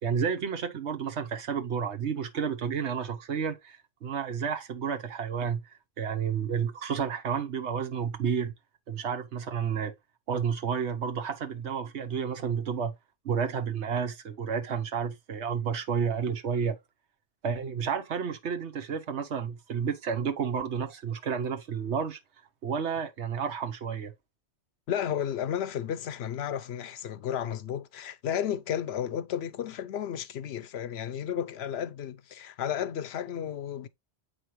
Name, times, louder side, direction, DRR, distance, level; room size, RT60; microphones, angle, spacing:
voice 1, 0.0-5.6 6.0-8.5 8.9-9.9 10.3-12.9 13.2-16.8 17.4-22.2 22.6-24.1, right 7 dB, 75° right, 1.3 m, -31 dB
voice 2, 24.9-33.9, left 9 dB, 70° left, 0.8 m, -33 dB
8.1 x 4.9 x 3.0 m
omnidirectional pair, 1.2 m